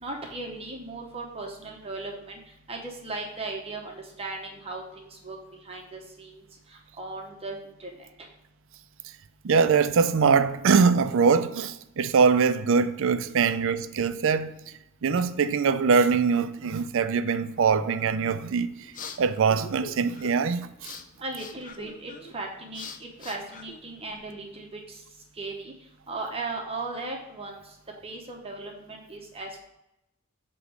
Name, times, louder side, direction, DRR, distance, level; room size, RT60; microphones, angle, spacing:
voice 1, 0.0-2.4 2.7-5.4 5.6-6.4 7.0-7.9 13.5-13.6 21.2-22.9 23.2-24.8 25.4-25.7 26.1-27.6 28.0-29.6, right 2 dB, 30° right, 0.9 m, -37 dB
voice 2, 9.4-14.6 15.0-18.8 19.2-20.9, right 5 dB, 65° right, 0.5 m, -23 dB
sound 1, 18.4-24.3, left 4 dB, 40° left, 0.6 m, -44 dB
8.2 x 3.1 x 6.3 m
head